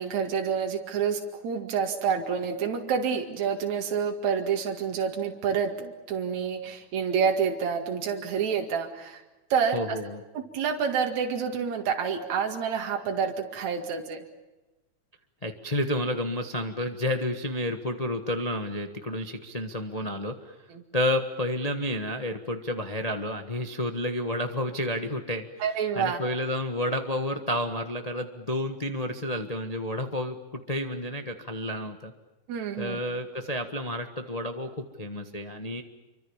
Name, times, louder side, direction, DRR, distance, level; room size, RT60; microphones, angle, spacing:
voice 1, 0.0-9.2 9.5-10.0 10.3-14.2 20.7-20.8 25.6-26.2 32.5-33.0, right 6 dB, 65° right, 2 dB, 3.3 m, -28 dB
voice 2, 9.7-10.2 15.4-20.5 20.9-25.5 25.9-32.1 32.8-35.8, left 1 dB, 70° left, 5 dB, 0.3 m, -30 dB
27.5 x 24.5 x 7.2 m, 1.1 s
omnidirectional pair, 3.5 m